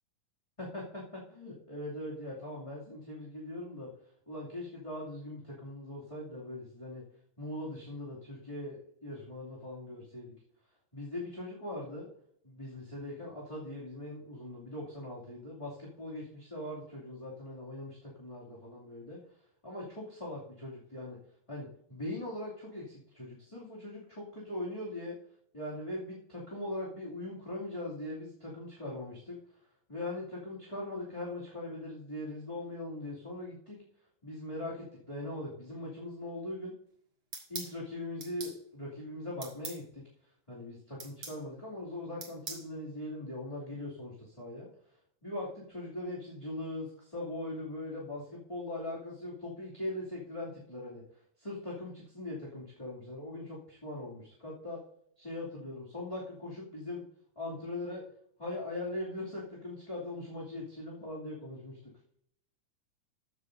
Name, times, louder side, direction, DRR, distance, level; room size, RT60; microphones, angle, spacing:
voice 1, 0.6-3.9 4.3-7.0 7.4-10.3 10.9-12.1 12.4-19.2 19.6-21.2 21.5-25.2 25.5-29.4 29.9-33.8 34.2-36.7 37.5-40.0 40.5-44.7 45.2-51.0 51.4-54.8 55.2-57.0 57.4-58.0 58.4-61.8, left 1 dB, 10° left, -6 dB, 2.2 m, -40 dB
sound 1, 37.3-37.7 38.2-38.6 39.4-39.8 41.0-41.4 42.2-42.7, right 4 dB, 40° right, 2.3 m, -41 dB
14.5 x 11.0 x 2.7 m, 0.69 s
omnidirectional pair, 3.8 m